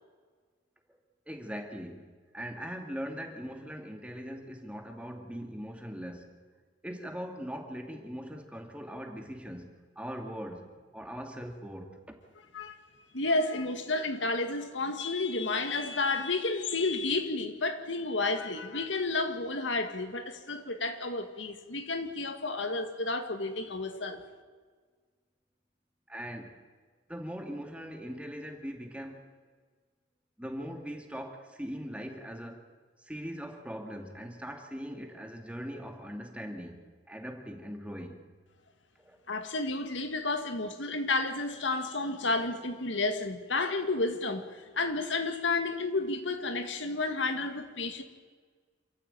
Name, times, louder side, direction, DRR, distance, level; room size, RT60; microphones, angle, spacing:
voice 1, 1.3-6.3 6.8-12.3 26.1-26.5 27.1-29.3 30.4-32.6 33.0-38.2 39.0-39.2, equal, 5° right, 2.3 m, -41 dB
voice 2, 13.1-24.2 39.3-48.0, left 3 dB, 75° left, 2.1 m, -31 dB
28.0 x 14.0 x 9.1 m
head